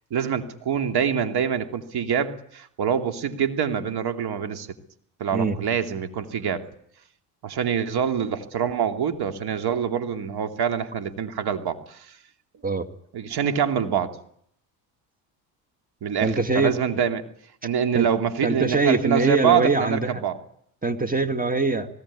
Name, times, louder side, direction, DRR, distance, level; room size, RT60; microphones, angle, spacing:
voice 1, 0.1-4.7 5.2-6.6 7.4-12.1 13.1-14.1 16.0-17.2 17.6-20.4, right 8 dB, 50° right, 7 dB, 2.8 m, -25 dB
voice 2, 16.2-16.7 17.9-18.1 18.4-20.2 20.8-21.9, right 3 dB, 15° right, 9 dB, 2.2 m, -23 dB
20.0 x 18.5 x 9.9 m, 0.67 s
supercardioid pair, 75°, 47 cm